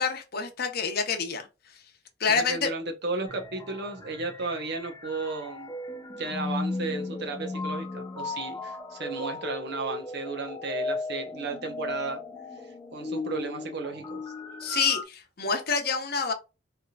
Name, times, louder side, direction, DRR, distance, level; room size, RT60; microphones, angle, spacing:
voice 1, 0.0-1.5 2.2-2.7 14.6-16.3, left 5 dB, 55° left, 0.8 m, -27 dB
voice 2, 2.3-5.8 6.2-12.2 12.9-14.2, right 3 dB, 60° right, 0.9 m, -34 dB
sound 1, 3.3-15.0, left 3 dB, 20° left, 0.4 m, -36 dB
3.4 x 2.9 x 2.3 m
head